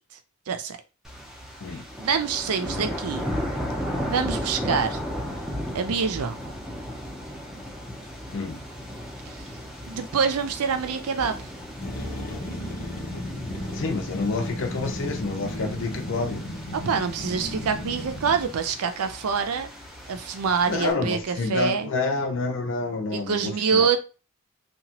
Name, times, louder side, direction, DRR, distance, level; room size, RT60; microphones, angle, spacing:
voice 1, 0.5-0.8 1.7-3.4 4.1-5.0 5.7-6.3 9.3-9.4 9.9-11.5 16.7-19.7 20.1-21.9 23.1-24.0, right 6 dB, 75° right, 0.4 m, -26 dB
sound 1, 1.0-20.9, equal, ahead, 0.5 m, -35 dB
sound 2, 11.8-18.6, left 1 dB, 85° left, 0.9 m, -35 dB
voice 2, 13.7-16.5 20.7-24.0, left 3 dB, 60° left, 0.6 m, -28 dB
2.9 x 2.2 x 2.8 m
head